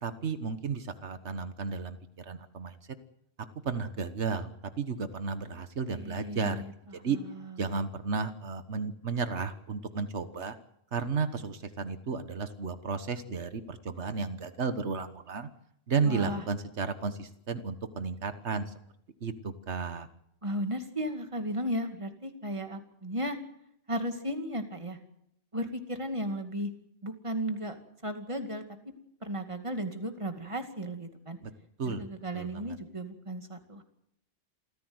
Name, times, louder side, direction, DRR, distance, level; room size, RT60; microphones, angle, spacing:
voice 1, 0.0-2.9 3.6-6.6 6.9-7.2 7.6-10.6 10.9-15.5 15.9-18.7 19.2-20.1 31.4-31.5 31.8-32.1 32.3-32.8, right 5 dB, 90° right, 11 dB, 1.6 m, -33 dB
voice 2, 6.0-6.7 16.1-16.4 20.4-23.4 23.9-25.0 25.5-26.7 27.0-27.8 28.0-28.6 29.2-31.4 31.9-33.8, equal, 30° right, 6 dB, 2.4 m, -35 dB
27.5 x 15.0 x 8.0 m, 0.74 s
omnidirectional pair, 1.1 m